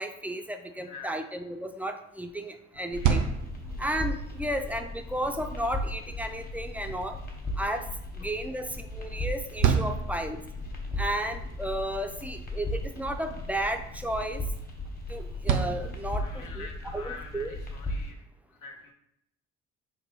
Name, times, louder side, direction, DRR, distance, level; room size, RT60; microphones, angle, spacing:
voice 1, 0.0-3.3 3.8-7.2 7.6-7.8 8.2-10.4 11.0-14.5 15.1-16.7 16.9-17.5, right 1 dB, 5° right, 5 dB, 0.3 m, -33 dB
voice 2, 0.8-1.1 2.7-3.3 4.5-4.7 8.5-8.6 16.2-18.2 18.5-18.9, left 4 dB, 85° left, 1 dB, 1.0 m, -46 dB
sound 1, 2.7-16.7, right 7 dB, 70° right, 0.5 m, -34 dB
sound 2, 2.9-18.1, left 1 dB, 30° left, 1.0 m, -37 dB
3.9 x 2.2 x 4.5 m, 0.77 s
cardioid pair, 90°, 30 cm